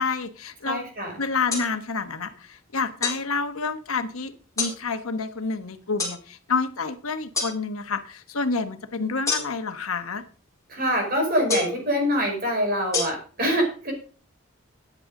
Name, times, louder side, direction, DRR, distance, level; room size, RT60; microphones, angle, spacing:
voice 1, 0.0-0.8 1.2-10.2, left 4 dB, 90° left, 8 dB, 1.2 m, -29 dB
voice 2, 0.6-1.2 10.7-13.9, equal, 45° right, 2 dB, 4.9 m, -25 dB
sound 1, 1.5-1.7 3.0-3.2 4.6-4.8 6.0-6.2 7.3-7.5 9.2-9.7 11.5-11.8 12.9-13.0, left 4 dB, 15° left, 4.3 m, -26 dB
13.5 x 9.7 x 3.8 m, 0.39 s
head